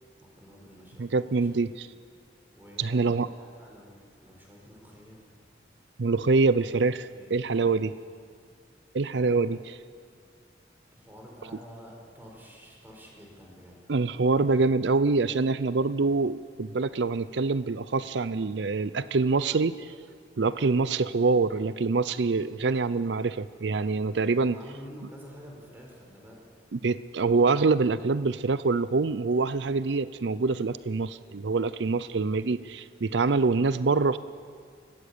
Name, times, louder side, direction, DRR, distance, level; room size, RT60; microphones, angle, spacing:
voice 1, 0.2-1.8 2.5-5.2 7.1-7.4 7.9-8.1 9.5-9.6 10.9-13.8 20.5-20.8 24.3-26.4, equal, 10° right, -1 dB, 4.9 m, -49 dB
voice 2, 1.0-1.9 2.8-3.3 6.0-7.9 8.9-9.6 13.9-19.9 20.4-24.6 26.7-34.2, right 4 dB, 70° right, 15 dB, 0.5 m, -25 dB
22.0 x 18.5 x 8.6 m, 2.1 s
head